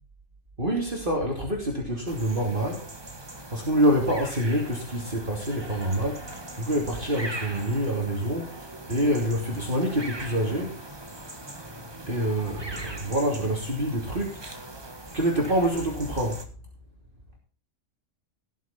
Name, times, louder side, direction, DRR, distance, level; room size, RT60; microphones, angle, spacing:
voice 1, 0.6-2.9 3.5-10.8 12.1-14.7 15.1-16.4, equal, 40° right, -1 dB, 3.2 m, -26 dB
sound 1, 2.1-16.5, right 2 dB, 20° right, 1.5 m, -41 dB
18.0 x 7.2 x 4.4 m, 0.39 s
omnidirectional pair, 1.3 m